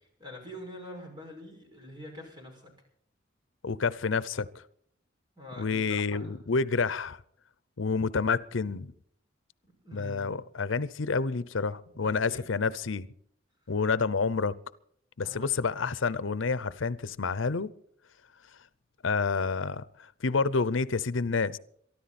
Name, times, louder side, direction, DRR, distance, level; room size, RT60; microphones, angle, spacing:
voice 1, 0.2-2.7 5.4-6.4 9.6-10.4 11.9-12.5 15.2-15.6, equal, 20° right, 5.8 m, -45 dB
voice 2, 3.6-4.6 5.6-7.2 7.8-8.9 9.9-13.1 13.7-14.6 15.2-17.7 19.0-21.6, left 4 dB, 85° left, 0.7 m, -29 dB
23.5 x 13.5 x 4.2 m
head